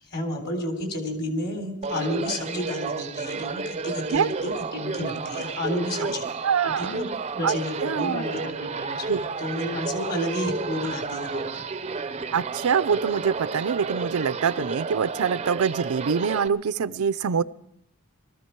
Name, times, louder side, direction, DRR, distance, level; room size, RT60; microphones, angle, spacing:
voice 1, 0.1-6.3 6.6-11.6, left 1 dB, 45° left, 4 dB, 3.5 m, -31 dB
sound 1, 1.8-16.5, right 4 dB, 30° right, 0.5 m, -32 dB
voice 2, 6.4-7.0 7.4-7.6 7.8-8.5 9.1-9.2 12.3-17.4, right 6 dB, 80° right, 16 dB, 0.5 m, -25 dB
19.5 x 14.0 x 4.6 m, 0.76 s
head